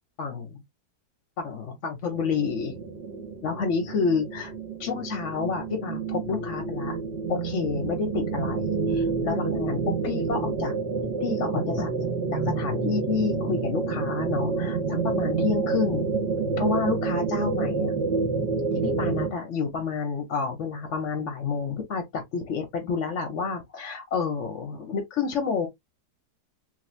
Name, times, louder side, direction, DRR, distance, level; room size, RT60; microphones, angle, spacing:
voice 1, 0.2-0.6 1.4-2.8 3.4-4.5 4.8-7.0 7.3-10.7 11.2-11.9 12.3-16.1 16.6-17.9 18.8-25.7, left 5 dB, 50° left, 1.0 m, -29 dB
sound 1, 2.1-19.3, right 4 dB, 50° right, 0.8 m, -28 dB
3.2 x 3.1 x 2.4 m
omnidirectional pair, 1.9 m